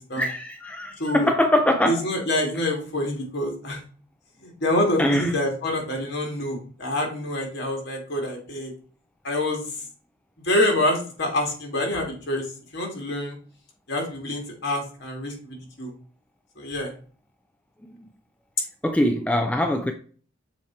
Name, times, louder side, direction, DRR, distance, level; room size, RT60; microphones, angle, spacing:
voice 1, 0.2-2.0 5.0-5.3 18.8-19.9, left 1 dB, 5° left, 0.4 m, -22 dB
voice 2, 1.9-3.8 4.4-8.7 9.2-9.6 10.4-12.5 12.7-13.4 13.9-15.9 16.6-16.9, left 1 dB, 55° left, 2.0 m, -26 dB
7.1 x 2.9 x 4.6 m
head